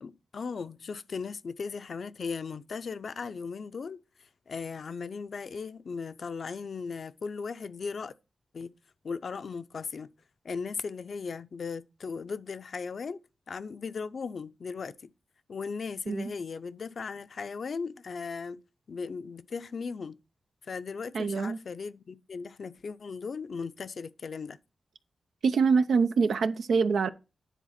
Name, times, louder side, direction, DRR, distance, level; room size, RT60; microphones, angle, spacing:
voice 1, 0.0-4.0 4.5-8.1 8.5-8.7 9.0-10.1 10.4-13.2 13.5-15.0 15.5-18.6 18.9-20.2 20.6-24.6, left 5 dB, 65° left, 0.5 m, -37 dB
voice 2, 21.1-21.6 25.4-27.1, right 5 dB, 85° right, 0.6 m, -25 dB
10.0 x 3.9 x 5.8 m
cardioid pair, 80°, 0 cm